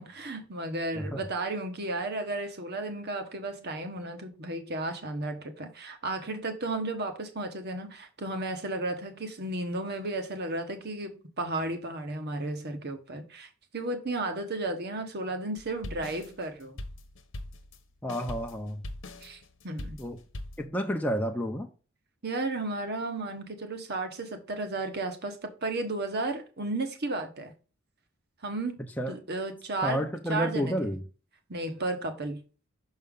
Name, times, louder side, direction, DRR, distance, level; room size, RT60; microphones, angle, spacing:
voice 1, 0.0-16.8 19.2-20.0 22.2-27.5 28.4-28.8 29.1-30.9 31.5-32.4, right 2 dB, 55° right, 1.3 m, -34 dB
sound 1, 15.6-20.7, left 1 dB, 65° left, 1.0 m, -41 dB
voice 2, 18.0-18.8 20.0-20.2 20.6-21.7 29.0-29.1 29.8-31.0, equal, 10° left, 0.7 m, -30 dB
6.1 x 5.5 x 3.8 m
head